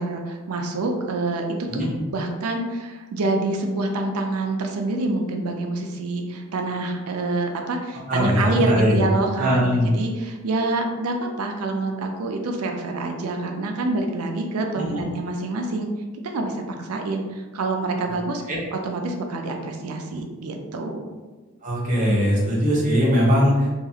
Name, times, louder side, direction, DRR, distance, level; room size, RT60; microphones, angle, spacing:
voice 1, 0.0-15.9 16.2-18.4 18.7-21.1, right 2 dB, 85° right, 3 dB, 0.5 m, -27 dB
voice 2, 8.1-9.0 9.4-9.9 14.8-15.0 18.5-18.6 21.6-23.7, equal, 35° right, -5 dB, 0.8 m, -20 dB
2.9 x 2.4 x 2.7 m, 1.2 s
head